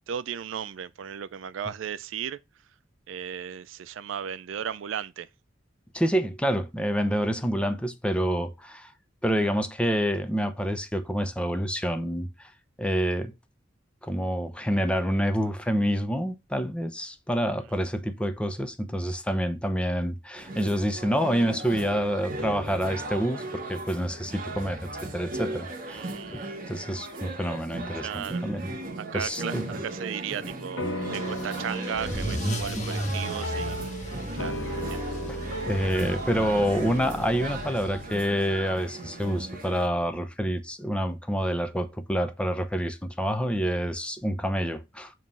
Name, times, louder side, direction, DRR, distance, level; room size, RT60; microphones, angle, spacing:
voice 1, 0.0-2.4 3.1-5.3 25.9-26.6 27.9-28.4 29.0-30.9 31.1-33.8 34.3-35.0, right 8 dB, 80° right, 0.4 m, -35 dB
voice 2, 5.9-8.9 9.2-12.5 12.8-13.3 14.0-28.6 29.1-29.7 32.7-33.0 35.3-35.4 35.6-45.1, equal, 5° left, 0.7 m, -28 dB
sound 1, 20.3-39.9, right 2 dB, 50° right, 1.4 m, -37 dB
sound 2, 30.8-39.5, equal, 90° left, 1.4 m, -37 dB
Car / Engine starting / Accelerating revving vroom, 31.1-38.3, equal, 40° left, 1.5 m, -35 dB
7.4 x 3.1 x 5.3 m
head